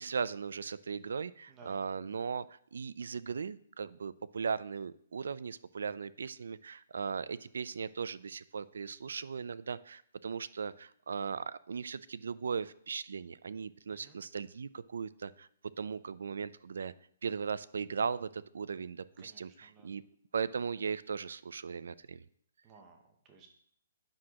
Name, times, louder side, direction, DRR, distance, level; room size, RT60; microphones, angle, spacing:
voice 1, 0.0-15.5 15.8-16.9 17.2-20.0 20.3-22.2, right 5 dB, 80° right, 17 dB, 0.4 m, -38 dB
voice 2, 1.5-1.8 13.9-14.2 19.2-19.9 22.6-23.5, right 4 dB, 15° right, 3 dB, 0.7 m, -58 dB
9.7 x 6.2 x 2.9 m, 0.65 s
hypercardioid pair, 180°, 0 cm